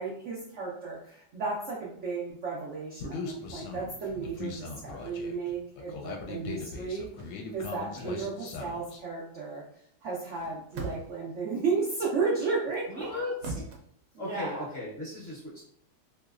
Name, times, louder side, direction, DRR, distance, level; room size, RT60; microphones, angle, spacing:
voice 1, 0.0-9.6 10.0-13.1 14.1-14.7, right 4 dB, 85° right, -4 dB, 0.6 m, -34 dB
Human voice, 3.0-9.0, left 4 dB, 75° left, 1.2 m, -40 dB
sound 1, 6.9-7.3 10.2-11.3 12.7-13.8, right 3 dB, 70° right, 1.0 m, -40 dB
voice 2, 12.9-13.5 14.1-15.6, left 2 dB, 45° left, -6 dB, 0.9 m, -37 dB
3.2 x 2.9 x 2.4 m, 0.65 s
omnidirectional pair, 2.1 m